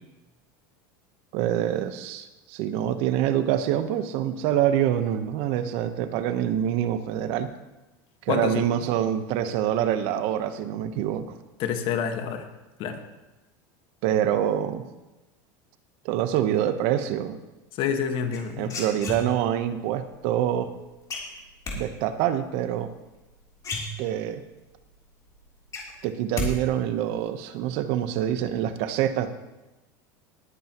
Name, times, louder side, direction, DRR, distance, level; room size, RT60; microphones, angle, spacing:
voice 1, 1.3-7.5 8.2-11.3 14.0-14.8 16.0-17.4 18.6-20.7 21.7-22.9 24.0-24.4 26.0-29.3, right 10 dB, 65° right, 10 dB, 1.0 m, -26 dB
voice 2, 8.3-8.7 11.6-12.5 12.8-13.0 17.7-18.7, left 7 dB, 55° left, 6 dB, 1.6 m, -28 dB
sound 1, 18.3-19.6 21.1-21.8 23.2-23.3 23.6-24.4 24.8-24.9 25.3-26.5 26.8-27.2, left 2 dB, 30° left, 3.4 m, -33 dB
20.5 x 9.3 x 3.0 m, 1.1 s
supercardioid pair, 105°, 11 cm